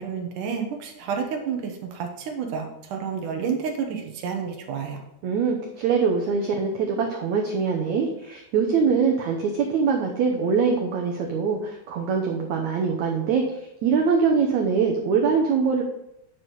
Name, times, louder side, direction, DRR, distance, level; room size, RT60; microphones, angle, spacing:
voice 1, 0.0-5.0, right 6 dB, 65° right, 3 dB, 2.2 m, -30 dB
voice 2, 5.2-15.8, right 5 dB, 85° right, 1 dB, 1.6 m, -23 dB
11.0 x 6.1 x 4.7 m, 0.82 s
omnidirectional pair, 4.8 m